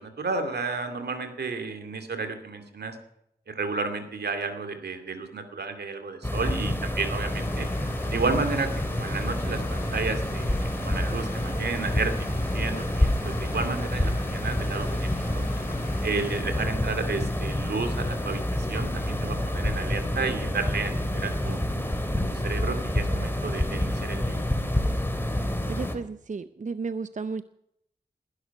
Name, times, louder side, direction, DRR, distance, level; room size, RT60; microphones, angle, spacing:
voice 1, 0.0-3.0 3.5-7.7 8.1-15.1 15.3-15.5 16.0-21.6 22.3-24.4, right 4 dB, 80° right, 7 dB, 2.4 m, -32 dB
sound 1, 6.2-25.9, left 1 dB, 15° left, 2.8 m, -28 dB
Stream, 7.3-16.4, left 4 dB, 60° left, 2.1 m, -45 dB
sound 2, 9.0-24.8, right 1 dB, 30° right, 5.7 m, -43 dB
voice 2, 25.7-27.4, right 4 dB, 50° right, 12 dB, 0.7 m, -33 dB
20.0 x 11.5 x 5.9 m, 0.77 s
cardioid pair, 45°, 17 cm